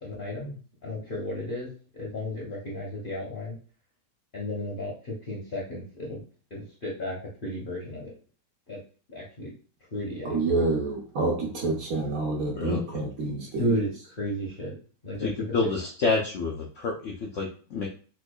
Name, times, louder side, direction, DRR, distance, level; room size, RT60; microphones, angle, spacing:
voice 1, 0.0-0.6 0.8-3.6 4.3-6.2 6.5-8.1 8.7-8.8 9.1-9.5 9.9-10.6 13.6-14.8 15.0-15.3 15.6-15.7, equal, 50° left, -4 dB, 0.6 m, -33 dB
voice 2, 10.2-13.8, right 3 dB, 60° right, 0 dB, 1.0 m, -28 dB
voice 3, 15.2-17.9, left 4 dB, 85° left, -1 dB, 0.6 m, -28 dB
4.5 x 2.3 x 2.2 m, 0.39 s
omnidirectional pair, 2.0 m